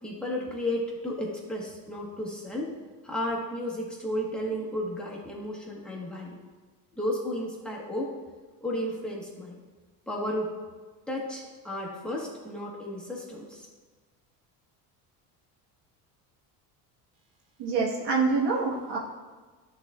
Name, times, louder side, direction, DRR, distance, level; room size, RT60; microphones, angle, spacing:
voice 1, 0.0-2.7 3.0-6.4 6.9-8.1 8.6-9.6 10.1-10.5 11.1-13.7, left 1 dB, ahead, -3 dB, 1.4 m, -33 dB
voice 2, 17.6-19.0, right 4 dB, 70° right, -2 dB, 1.5 m, -26 dB
10.5 x 4.1 x 2.4 m, 1.4 s
supercardioid pair, 100°, 43 cm